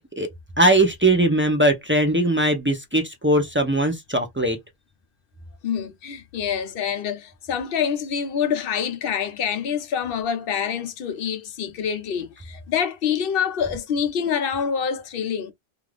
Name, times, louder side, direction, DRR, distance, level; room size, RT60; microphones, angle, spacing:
voice 1, 0.6-4.6, right 1 dB, 15° right, 0.4 m, -20 dB
voice 2, 5.6-15.5, left 7 dB, 65° left, 0.7 m, -26 dB
2.5 x 2.4 x 3.2 m
omnidirectional pair, 1.1 m